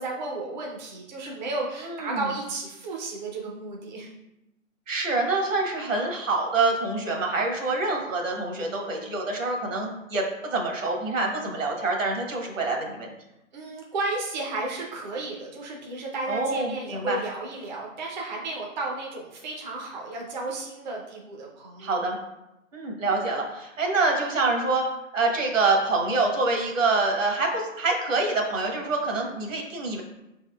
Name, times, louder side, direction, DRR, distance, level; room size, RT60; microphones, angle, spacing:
voice 1, 0.0-4.1 13.5-22.0, right 2 dB, 35° right, -2 dB, 0.6 m, -33 dB
voice 2, 1.8-2.2 4.9-13.1 16.3-17.2 21.8-22.2 22.7-24.8 25.1-30.0, right 3 dB, 70° right, 1 dB, 1.2 m, -26 dB
4.8 x 3.5 x 2.3 m, 0.91 s
hypercardioid pair, 150°, 40 cm